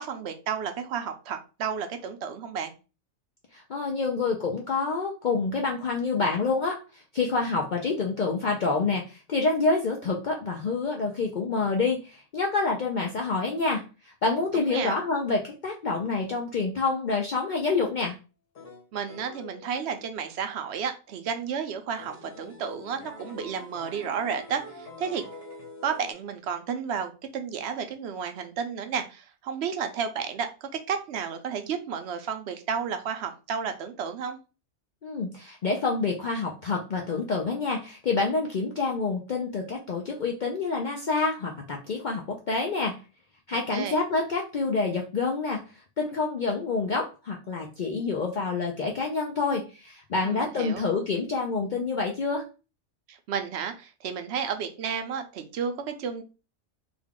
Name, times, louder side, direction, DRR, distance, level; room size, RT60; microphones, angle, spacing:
voice 1, 0.0-2.7 14.5-14.9 18.9-25.2 25.8-34.4 43.5-44.0 50.2-50.9 53.1-56.2, right 7 dB, 70° right, 7 dB, 0.8 m, -32 dB
voice 2, 3.5-18.1 35.0-43.0 43.5-52.4, left 4 dB, 55° left, 0 dB, 0.5 m, -27 dB
sound 1, 18.6-20.1 22.0-26.1, left 2 dB, 90° left, 1.4 m, -45 dB
3.5 x 2.3 x 3.6 m, 0.33 s
omnidirectional pair, 1.3 m